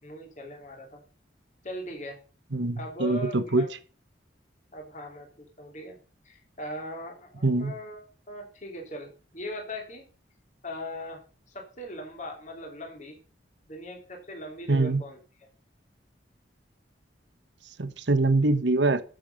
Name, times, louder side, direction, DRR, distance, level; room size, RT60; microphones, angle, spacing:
voice 1, 0.0-1.0 1.6-2.2 2.8-3.7 4.7-5.3 5.6-6.0 6.2-10.1 10.6-11.2 11.5-13.2 13.7-15.2, equal, 40° left, 3.1 m, -40 dB
voice 2, 2.5-3.7 7.4-7.7 14.7-15.0 17.8-19.0, right 2 dB, 75° right, 1.1 m, -24 dB
14.5 x 7.0 x 5.4 m
head